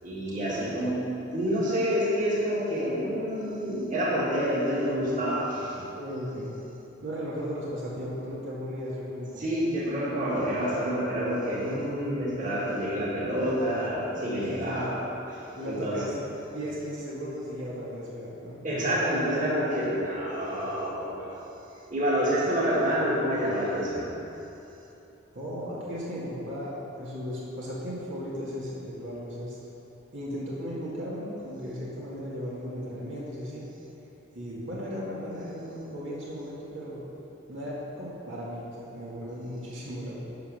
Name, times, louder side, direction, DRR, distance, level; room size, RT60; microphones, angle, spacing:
voice 1, 0.0-0.9 1.3-5.8 9.4-15.0 15.3-15.4 15.7-16.0 18.6-21.3 21.9-24.1, equal, 40° right, -7 dB, 2.4 m, -28 dB
voice 2, 5.8-6.5 7.0-9.4 14.3-14.9 15.5-16.1 16.5-18.9 25.3-29.6 30.1-33.6 34.3-37.0 37.5-40.2, equal, 70° right, -7 dB, 2.1 m, -36 dB
12.0 x 5.3 x 6.7 m, 3.0 s
head